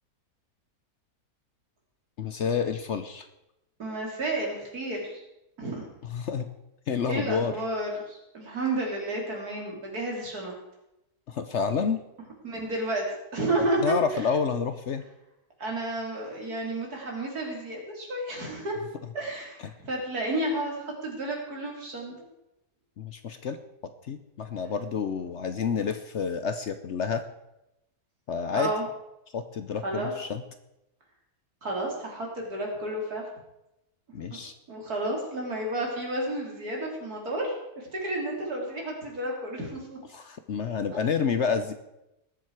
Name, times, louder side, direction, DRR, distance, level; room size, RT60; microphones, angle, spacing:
voice 1, 2.2-3.3 6.0-6.5 6.9-7.6 11.3-12.0 13.8-15.0 19.6-19.7 23.0-23.6 23.8-27.2 28.3-28.7 29.3-30.4 34.1-34.5 40.1-41.7, left 6 dB, 55° left, 9 dB, 0.9 m, -29 dB
voice 2, 3.8-5.2 5.6-5.9 7.1-10.5 12.4-13.0 13.3-14.3 15.6-18.7 19.1-22.1 28.5-28.8 29.8-30.1 31.6-33.2 34.1-34.4 34.7-40.0 40.9-41.0, right 1 dB, 75° right, 0 dB, 3.6 m, -31 dB
20.0 x 7.5 x 4.7 m, 0.90 s
omnidirectional pair, 1.6 m